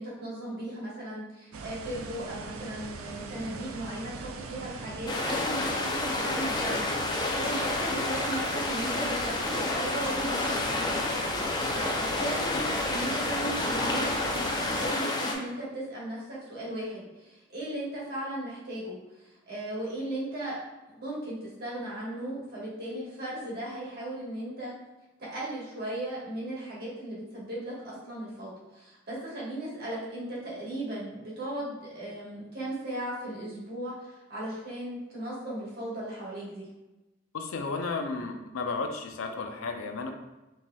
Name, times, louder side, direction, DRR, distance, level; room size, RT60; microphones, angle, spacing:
voice 1, 0.0-11.0 11.4-20.6 20.9-24.7 25.2-36.7, right 1 dB, 50° right, -6 dB, 1.3 m, -37 dB
sound 1, 1.5-14.9, right 4 dB, 85° right, 0.4 m, -41 dB
sound 2, 5.1-15.3, left 2 dB, 20° left, 0.4 m, -29 dB
voice 2, 37.3-40.1, left 4 dB, 85° left, 4 dB, 0.5 m, -33 dB
4.5 x 2.8 x 2.2 m, 1.0 s
head